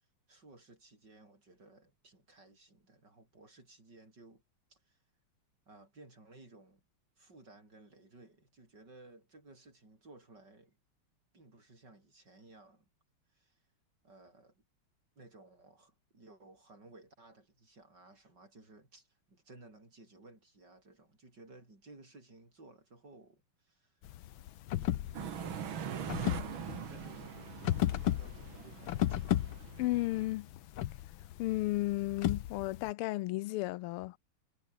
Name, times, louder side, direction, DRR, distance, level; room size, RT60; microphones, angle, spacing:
voice 1, 0.3-4.4 4.7-5.0 5.7-6.8 7.2-10.8 11.3-12.8 13.3-13.6 14.0-14.6 15.2-24.0 24.7-29.6, right 2 dB, 50° right, 8.1 m, -58 dB
sound 1, 24.0-32.9, left 13 dB, 70° left, 1.6 m, -35 dB
sound 2, 25.1-30.3, right 9 dB, 65° right, 2.2 m, -43 dB
voice 2, 29.8-30.5 31.4-34.2, left 18 dB, 90° left, 1.5 m, -33 dB
omnidirectional pair, 2.4 m